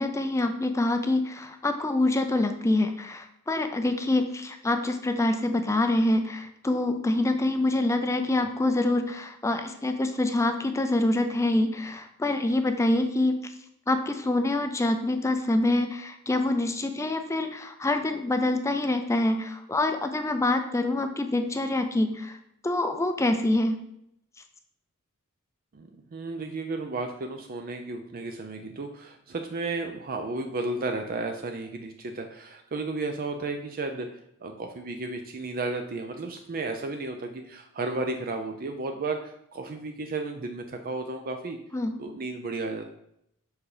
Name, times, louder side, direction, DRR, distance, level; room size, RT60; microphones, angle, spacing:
voice 1, 0.0-13.5 13.9-22.4 22.6-23.8 41.7-42.0, left 2 dB, 15° left, 7 dB, 0.4 m, -26 dB
voice 2, 25.7-41.6 42.0-42.9, right 3 dB, 40° right, 5 dB, 0.5 m, -33 dB
5.6 x 4.6 x 4.9 m, 0.76 s
head